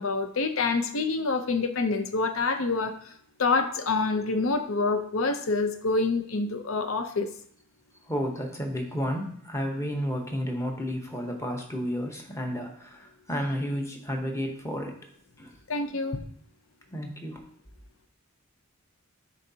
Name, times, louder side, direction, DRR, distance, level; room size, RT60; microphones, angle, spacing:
voice 1, 0.0-2.9 3.4-7.3 15.7-16.2, left 3 dB, 70° left, 8 dB, 0.6 m, -26 dB
voice 2, 8.1-15.0 15.4-15.5 16.9-17.4, equal, 15° left, 1 dB, 0.9 m, -32 dB
9.9 x 3.9 x 2.8 m, 0.63 s
head